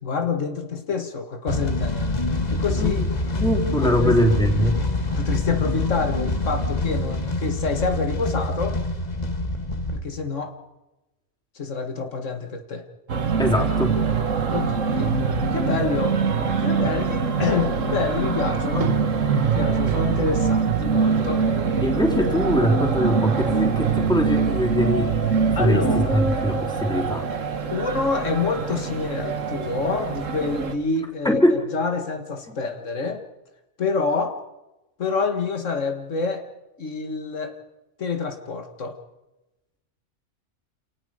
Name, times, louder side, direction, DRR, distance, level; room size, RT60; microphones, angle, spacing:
voice 1, 0.0-2.1 2.5-3.0 3.8-4.2 5.2-8.8 9.9-10.6 11.6-12.8 14.5-15.2 15.5-16.2 16.6-19.0 19.5-21.4 25.6-26.2 27.7-33.2 33.8-34.4 35.0-36.4 36.8-37.6 38.0-39.0, left 4 dB, 80° left, 6 dB, 1.9 m, -27 dB
sound 1, 1.5-10.0, left 2 dB, 35° left, 1.6 m, -25 dB
voice 2, 3.4-4.8 13.4-14.0 21.8-25.1 25.5-27.2 31.2-31.6 32.5-32.6, equal, 5° left, 0 dB, 3.8 m, -22 dB
sound 2, 13.1-30.7, right 5 dB, 85° right, 1.8 m, -23 dB
28.5 x 18.5 x 5.0 m, 0.99 s
omnidirectional pair, 1.3 m